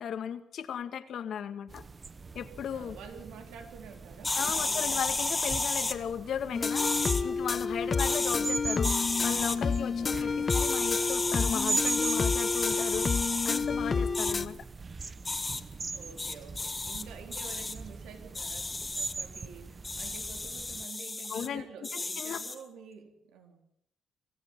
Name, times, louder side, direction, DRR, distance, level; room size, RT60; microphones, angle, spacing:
voice 1, 0.0-1.8 2.3-3.0 4.4-14.7 21.3-21.7 21.9-22.4, left 8 dB, 65° left, 9 dB, 2.1 m, -36 dB
sound 1, 1.7-20.9, right 4 dB, 30° right, 1.0 m, -41 dB
voice 2, 2.7-4.9 7.0-7.4 10.0-10.5 15.9-23.6, right 6 dB, 85° right, 4 dB, 4.0 m, -49 dB
sound 2, 4.2-6.0 6.8-7.2 7.9-8.4 8.8-9.6 10.5-13.6 14.1-14.3 15.3-15.6 16.2-17.0 17.3-17.7 18.4-19.1 19.8-21.5 21.8-22.6, left 3 dB, 20° left, 2.1 m, -32 dB
sound 3, 6.5-14.5, left 5 dB, 35° left, 1.1 m, -30 dB
26.5 x 15.0 x 9.0 m, 0.77 s
cardioid pair, 90°, 0 cm